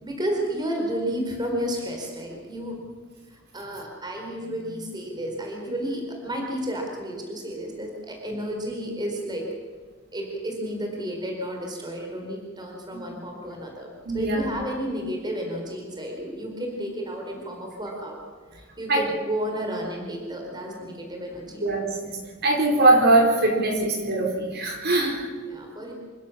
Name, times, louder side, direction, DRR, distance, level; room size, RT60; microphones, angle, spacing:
voice 1, 0.0-2.8 3.3-9.5 10.1-18.2 18.5-21.6 25.4-25.9, equal, 20° right, 1 dB, 4.4 m, -32 dB
voice 2, 14.0-14.5 18.9-19.0 21.6-22.1 22.4-25.3, right 2 dB, 50° right, 1 dB, 4.9 m, -21 dB
27.0 x 16.0 x 7.3 m, 1.5 s
head